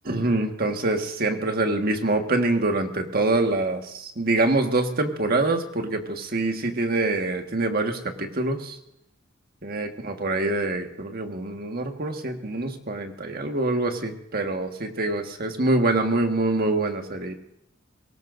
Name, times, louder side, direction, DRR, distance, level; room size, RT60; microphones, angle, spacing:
voice 1, 0.1-8.8 9.6-17.3, right 2 dB, 50° right, 4 dB, 1.6 m, -25 dB
23.0 x 18.0 x 2.6 m, 0.82 s
head